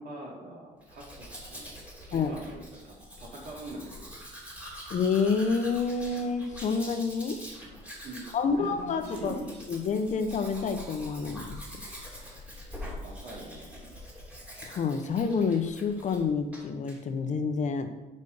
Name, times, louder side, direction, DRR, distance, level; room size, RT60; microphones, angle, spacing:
voice 1, 0.0-1.7 2.0-4.2 4.5-4.9 8.0-9.6 13.0-13.9, right 1 dB, 60° right, -3 dB, 3.2 m, -43 dB
Domestic sounds home sounds, 0.8-16.2 16.5-17.0, equal, 10° right, 2.9 m, -45 dB
voice 2, 4.9-7.4 8.3-9.4 9.7-11.6 14.6-17.9, left 5 dB, 45° left, 8 dB, 0.8 m, -28 dB
6.9 x 5.3 x 6.9 m, 1.1 s
cardioid pair, 110°, 17 cm